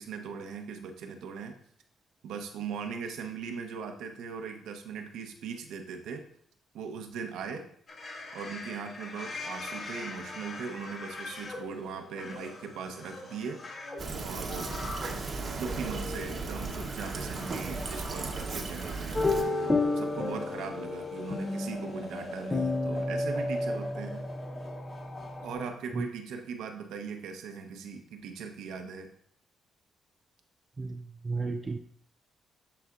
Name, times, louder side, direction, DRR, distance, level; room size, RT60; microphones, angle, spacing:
voice 1, 0.0-1.6 2.2-6.2 6.7-7.7 8.3-13.6 14.2-14.7 15.5-19.2 19.4-24.3 25.4-29.1, right 6 dB, 85° right, 5 dB, 1.0 m, -39 dB
sound 1, 7.9-25.5, left 1 dB, 50° left, 2.4 m, -40 dB
Fill (with liquid), 14.0-19.4, right 4 dB, 45° right, 1.0 m, -36 dB
sound 2, 19.2-25.7, left 3 dB, 20° left, 0.6 m, -32 dB
voice 2, 30.8-31.8, right 3 dB, 30° right, 4 dB, 0.4 m, -33 dB
12.5 x 4.3 x 2.5 m, 0.63 s
cardioid pair, 90°, 0 cm